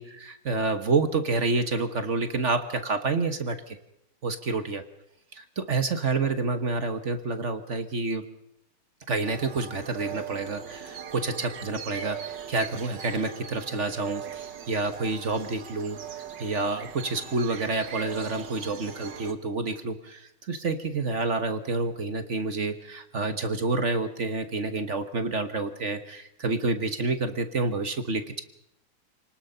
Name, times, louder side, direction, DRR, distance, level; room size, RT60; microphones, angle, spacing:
voice 1, 0.0-3.8 4.2-4.8 5.3-8.2 9.1-28.4, right 3 dB, 40° right, 8 dB, 1.3 m, -28 dB
sound 1, 9.2-19.3, right 8 dB, 60° right, 2.0 m, -40 dB
28.0 x 19.5 x 5.6 m, 0.78 s
omnidirectional pair, 2.3 m